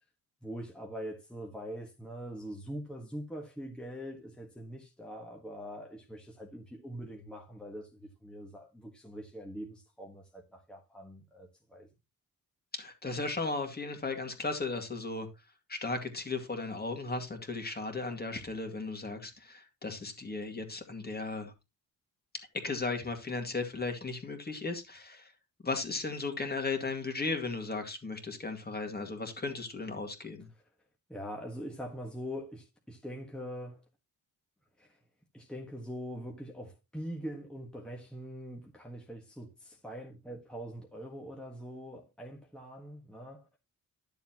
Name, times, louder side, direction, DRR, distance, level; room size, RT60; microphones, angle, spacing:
voice 1, 0.4-11.9 31.1-33.8 34.8-35.0 35.3-43.5, equal, 5° left, 1.5 m, -43 dB
voice 2, 12.7-15.3 15.7-21.5 22.6-25.3 25.6-30.5, left 3 dB, 25° left, 2.2 m, -36 dB
11.5 x 7.0 x 2.9 m
wide cardioid pair, 120°, 37 cm